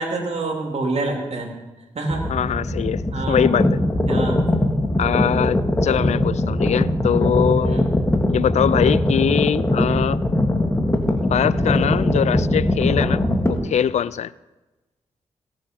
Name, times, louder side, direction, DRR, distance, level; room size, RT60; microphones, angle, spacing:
voice 1, 0.0-1.5 1.9-2.2 3.1-3.4 4.0-4.4 7.5-7.8, right 2 dB, 60° right, 2 dB, 2.9 m, -26 dB
sound 1, 2.1-13.6, left 1 dB, 20° left, 1.9 m, -21 dB
voice 2, 2.3-3.8 5.0-7.9 8.3-10.2 11.2-14.3, left 9 dB, 70° left, 20 dB, 0.4 m, -22 dB
17.5 x 7.6 x 5.3 m, 1.1 s
supercardioid pair, 45°, 12 cm